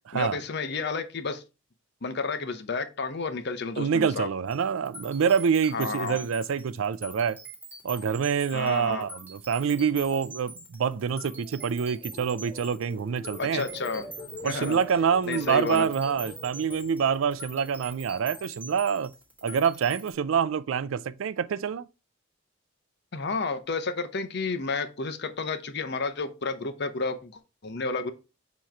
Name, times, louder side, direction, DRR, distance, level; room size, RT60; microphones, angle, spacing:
voice 1, 0.1-1.4 2.0-4.3 5.7-6.2 8.5-9.1 13.4-14.1 14.4-14.8 15.3-15.9 23.1-28.1, left 4 dB, 60° left, 0.8 m, -31 dB
voice 2, 3.8-7.4 7.8-13.7 14.4-19.1 19.4-21.9, right 7 dB, 90° right, 0.4 m, -26 dB
sound 1, 4.5-20.1, right 2 dB, 10° right, 1.8 m, -45 dB
sound 2, 11.2-18.4 18.8-19.2, left 1 dB, 25° left, 1.4 m, -45 dB
7.2 x 3.1 x 4.4 m
head